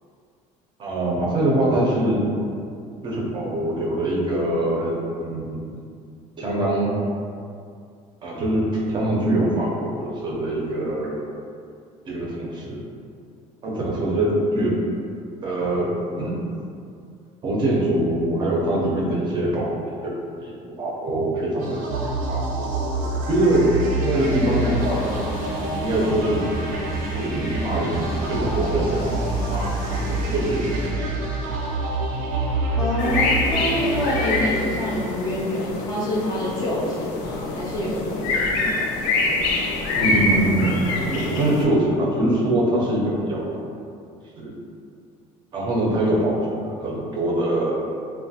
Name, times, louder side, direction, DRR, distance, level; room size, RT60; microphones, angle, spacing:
voice 1, 0.8-2.3 3.0-5.7 6.4-6.9 8.2-11.2 12.1-12.8 13.6-14.8 15.4-16.5 17.4-20.1 20.4-25.2 25.8-26.4 27.1-28.0 28.3-29.2 29.5-31.2 39.9-43.6 44.4-44.5 45.5-47.8, right 1 dB, 35° right, -4 dB, 0.5 m, -23 dB
sound 1, 21.6-35.3, right 2 dB, 85° right, 0.5 m, -27 dB
sound 2, 24.1-30.9, left 2 dB, 75° left, 0.9 m, -34 dB
voice 2, 32.8-38.7, equal, 25° left, -5 dB, 0.5 m, -26 dB
sound 3, 33.0-41.6, left 2 dB, 90° left, 0.4 m, -25 dB
3.0 x 2.1 x 2.7 m, 2.4 s
cardioid pair, 155°, 14 cm